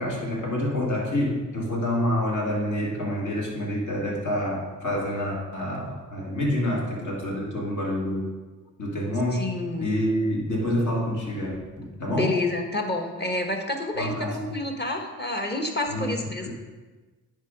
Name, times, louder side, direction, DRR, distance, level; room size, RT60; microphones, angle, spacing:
voice 1, 0.0-8.3 8.8-9.5 9.8-12.4 14.0-14.4 15.9-16.2, left 1 dB, 60° left, -3 dB, 2.1 m, -27 dB
voice 2, 9.3-9.9 12.1-16.5, left 2 dB, 30° left, 2 dB, 1.3 m, -29 dB
9.6 x 3.9 x 5.1 m, 1.3 s
cardioid pair, 65°, 33 cm